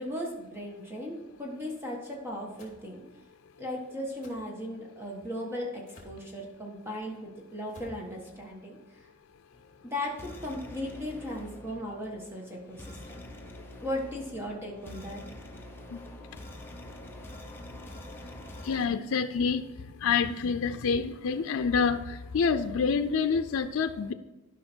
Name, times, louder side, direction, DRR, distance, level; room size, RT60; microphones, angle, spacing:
voice 1, 0.0-3.0 3.6-9.0 9.8-13.2 13.8-15.2, left 1 dB, 10° right, -1 dB, 1.4 m, -37 dB
sound 1, 2.6-2.8 4.2-4.4 5.9-6.2 7.7-8.0, left 1 dB, 35° left, 2.4 m, -50 dB
sound 2, 9.5-18.9, left 1 dB, 10° left, 1.0 m, -46 dB
voice 2, 18.6-24.1, left 5 dB, 85° left, 9 dB, 0.5 m, -27 dB
12.5 x 5.7 x 4.5 m, 1.1 s
head